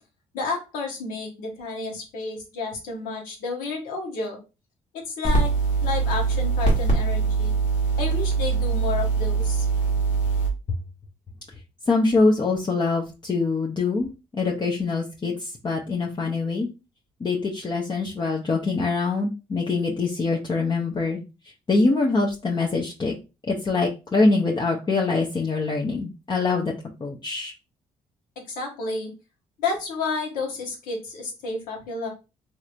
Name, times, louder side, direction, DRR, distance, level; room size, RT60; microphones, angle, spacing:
voice 1, 0.3-4.4 4.9-5.5 5.8-7.5 8.0-9.7 28.5-29.1 29.6-32.1, left 4 dB, 80° left, 1 dB, 1.2 m, -31 dB
sound 1, 5.2-10.5, right 4 dB, 65° left, 1.4 m, -22 dB
voice 2, 11.9-14.1 14.3-16.7 17.2-21.2 21.7-23.1 23.5-26.7 27.0-27.5, left 3 dB, 30° left, -2 dB, 0.7 m, -24 dB
3.3 x 2.9 x 2.5 m, 0.29 s
supercardioid pair, 65°, 14 cm